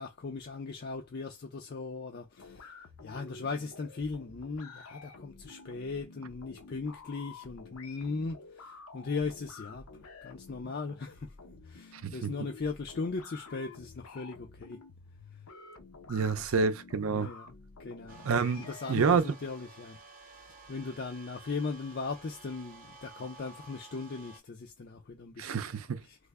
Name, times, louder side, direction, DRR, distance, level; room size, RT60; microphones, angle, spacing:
voice 1, 0.0-2.8 3.0-9.8 10.2-11.3 11.6-14.8 16.3-16.6 17.1-17.5 17.8-18.3 18.7-20.0 20.4-25.6 26.1-26.2, left 4 dB, 45° left, 0.4 m, -38 dB
sound 1, 2.4-19.2, left 4 dB, 80° left, 0.7 m, -51 dB
voice 2, 11.9-12.3 16.1-17.3 18.2-19.4 25.4-26.0, right 5 dB, 70° right, 0.5 m, -28 dB
sound 2, 18.1-24.4, right 3 dB, 40° right, 0.8 m, -53 dB
3.3 x 2.0 x 3.5 m
head